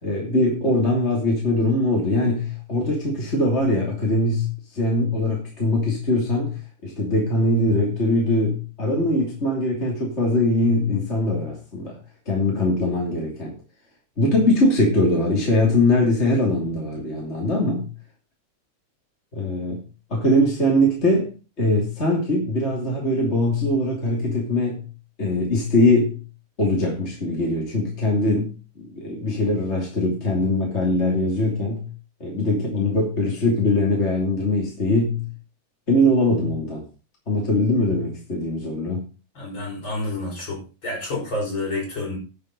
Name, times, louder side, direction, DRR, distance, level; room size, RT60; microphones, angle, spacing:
voice 1, 0.0-6.6 6.8-12.0 12.3-13.5 14.2-17.9 19.3-19.8 20.1-24.9 25.2-26.2 26.6-28.5 28.9-31.9 32.2-35.3 35.9-36.8 37.3-39.0, left 1 dB, 25° left, -2 dB, 2.8 m, -21 dB
voice 2, 39.3-42.2, left 2 dB, 40° left, -1 dB, 5.0 m, -29 dB
11.0 x 7.2 x 5.3 m, 0.34 s
omnidirectional pair, 3.4 m